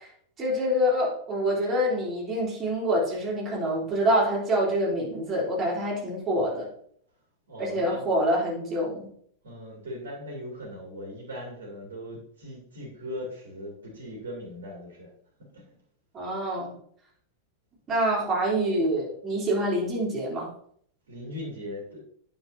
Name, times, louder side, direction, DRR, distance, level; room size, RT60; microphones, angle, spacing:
voice 1, 0.4-6.7 7.6-9.1 16.1-16.7 17.9-20.5, equal, 25° right, -4 dB, 3.5 m, -26 dB
voice 2, 7.5-8.1 9.4-15.1 15.5-15.6 21.1-22.0, equal, 65° right, -1 dB, 2.7 m, -39 dB
9.2 x 6.9 x 2.8 m, 0.63 s
figure-of-eight pair, 90°, 0 cm